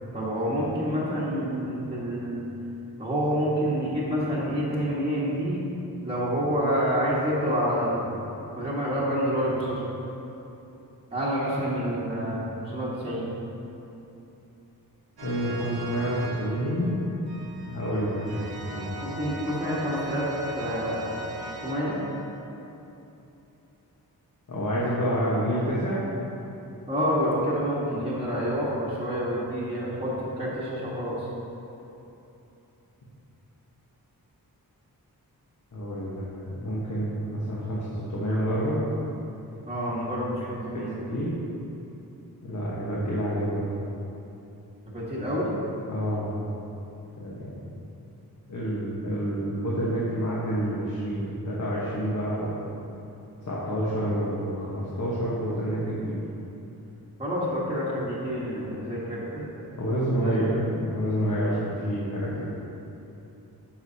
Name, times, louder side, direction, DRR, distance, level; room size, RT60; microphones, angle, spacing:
voice 1, 0.1-2.4 3.0-5.6 6.0-8.1 8.6-9.8 11.1-13.3 19.0-20.2 20.6-21.1 21.6-22.0 26.9-31.3 39.7-41.0 44.8-45.5 57.2-59.5 60.2-60.4, equal, 15° right, -9 dB, 1.3 m, -28 dB
voice 2, 15.2-17.0 17.7-19.0 24.5-26.1 35.7-36.2 36.6-38.8 41.1-41.3 42.4-43.6 45.9-46.3 47.2-47.6 48.5-52.6 53.5-56.1 59.8-62.4, equal, 50° left, -7 dB, 1.2 m, -28 dB
sound 1, 15.2-22.4, right 1 dB, 85° right, 1.0 m, -39 dB
10.5 x 6.3 x 2.8 m, 2.9 s
wide cardioid pair, 140°, 37 cm